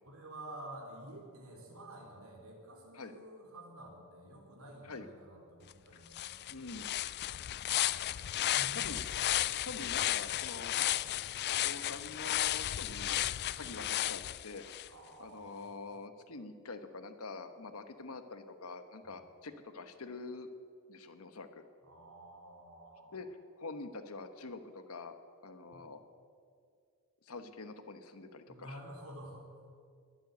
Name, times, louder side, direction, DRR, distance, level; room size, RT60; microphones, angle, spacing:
voice 1, 0.0-6.9 7.2-9.0 13.4-13.5 14.9-15.9 19.0-19.2 21.8-23.2 25.7-25.8 28.5-29.4, right 1 dB, 65° right, 0 dB, 3.9 m, -51 dB
sound 1, 5.7-5.8 6.1-14.9, left 13 dB, 45° left, 0.3 m, -34 dB
voice 2, 6.5-6.9 8.7-9.0 9.6-11.1 11.5-13.2 13.6-14.6 15.2-20.5 20.9-21.6 23.1-23.3 23.6-25.1 25.4-26.0 27.2-28.8, left 3 dB, 70° left, 9 dB, 1.2 m, -46 dB
21.0 x 7.8 x 8.2 m, 2.2 s
head